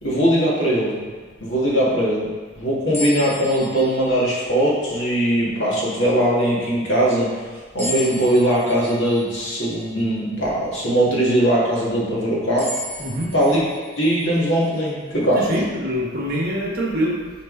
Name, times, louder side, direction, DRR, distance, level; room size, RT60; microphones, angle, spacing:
voice 1, 0.0-1.0 1.4-2.3 2.6-7.5 7.7-12.8 13.3-13.6 14.0-15.4, right 1 dB, 60° left, -6 dB, 2.3 m, -20 dB
sound 1, 2.9-5.3 5.9-6.0 7.8-11.1 11.7-11.8 12.6-15.6, left 1 dB, 10° left, 1.5 m, -36 dB
voice 2, 13.0-13.3 15.3-17.3, equal, 45° right, -3 dB, 1.5 m, -24 dB
9.6 x 4.4 x 4.1 m, 1.5 s
head